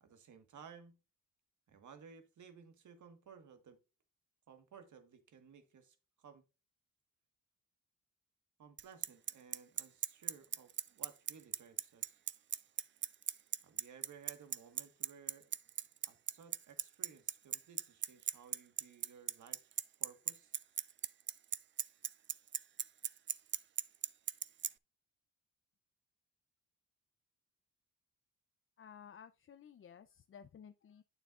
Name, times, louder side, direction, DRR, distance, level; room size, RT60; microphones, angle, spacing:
voice 1, 0.0-1.0 1.7-3.8 4.5-6.4 8.6-12.2 13.6-15.5 16.0-19.7 20.0-20.6, right 6 dB, 60° right, 1.5 m, -58 dB
Bicycle, 8.8-24.7, right 9 dB, 35° right, 0.4 m, -36 dB
voice 2, 28.8-31.0, left 8 dB, 40° left, 0.5 m, -55 dB
9.1 x 6.8 x 2.4 m
supercardioid pair, 60°, 33 cm